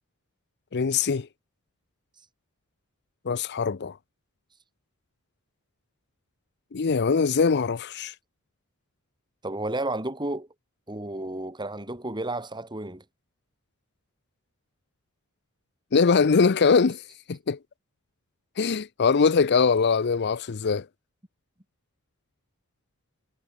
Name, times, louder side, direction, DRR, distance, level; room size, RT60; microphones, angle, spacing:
voice 1, 0.7-1.3 3.3-4.0 6.7-8.1 15.9-17.0 17.3-17.6 18.6-20.9, left 5 dB, 50° left, 0.6 m, -22 dB
voice 2, 9.4-10.5 10.9-13.0, right 2 dB, 20° right, 5.6 m, -32 dB
head